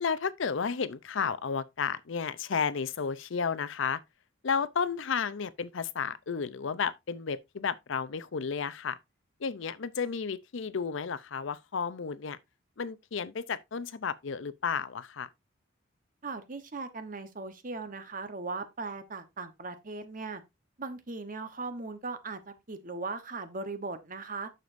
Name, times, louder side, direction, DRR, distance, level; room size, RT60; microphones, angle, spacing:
voice 1, 0.0-4.0 4.4-9.0 9.4-12.4 12.8-15.3, left 6 dB, 65° left, 0.5 m, -32 dB
voice 2, 16.2-20.4 20.8-24.5, right 3 dB, 40° right, 1.0 m, -38 dB
9.4 x 6.7 x 2.6 m
head